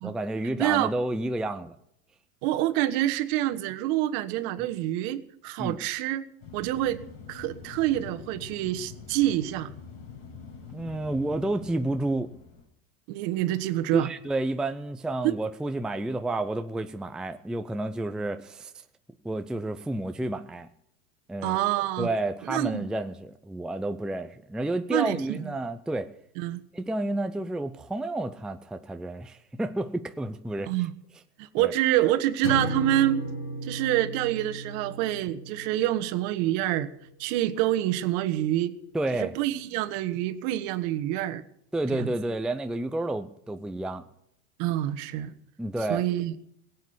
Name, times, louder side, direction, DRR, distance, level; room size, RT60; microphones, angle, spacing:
voice 1, 0.0-1.7 5.6-5.8 10.7-12.3 13.9-18.7 19.2-20.7 21.3-21.6 22.0-26.1 26.7-30.7 31.6-31.7 38.9-39.3 41.7-44.0 45.6-46.1, right 2 dB, ahead, 7 dB, 0.6 m, -30 dB
voice 2, 0.6-0.9 2.4-6.2 6.5-7.0 7.3-9.7 13.1-14.1 15.2-15.3 21.4-22.1 22.5-22.8 24.9-25.5 26.4-26.6 30.7-30.9 31.4-33.3 33.6-36.9 37.2-38.7 39.2-41.4 41.9-42.1 44.6-45.3 45.9-46.3, right 14 dB, 55° right, 11 dB, 1.4 m, -27 dB
sound 1, 6.4-12.7, left 6 dB, 55° left, 5.5 m, -45 dB
sound 2, 32.4-36.8, equal, 40° left, 5.2 m, -35 dB
17.0 x 8.5 x 9.5 m, 0.75 s
hypercardioid pair, 110°, 43 cm